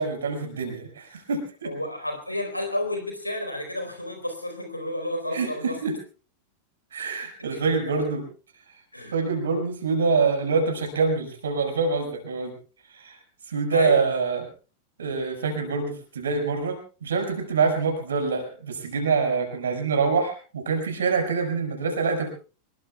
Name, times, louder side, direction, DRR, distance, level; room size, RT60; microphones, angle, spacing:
voice 1, 0.0-1.7 5.3-6.0 6.9-8.2 9.1-12.5 12.9-13.2 13.5-14.5 15.0-22.3, right 4 dB, 65° right, 4 dB, 5.6 m, -25 dB
voice 2, 1.6-5.8 7.4-7.6 7.9-8.0 8.9-9.1 13.7-14.1, left 1 dB, 85° left, 5 dB, 4.3 m, -31 dB
26.0 x 21.5 x 2.4 m, 0.36 s
figure-of-eight pair, 90°, 0 cm